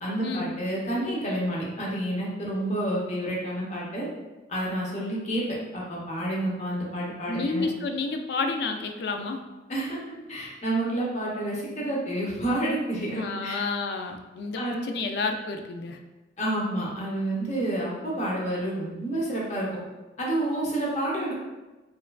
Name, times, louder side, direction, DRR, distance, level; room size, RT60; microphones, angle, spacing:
voice 1, 0.0-4.1 4.5-5.5 5.7-7.6 9.7-13.6 14.5-14.8 16.4-19.8 20.2-21.3, right 1 dB, 35° left, -4 dB, 0.8 m, -29 dB
voice 2, 7.3-9.4 13.2-16.0, left 3 dB, 60° left, 5 dB, 0.3 m, -30 dB
4.4 x 2.4 x 2.3 m, 1.1 s
head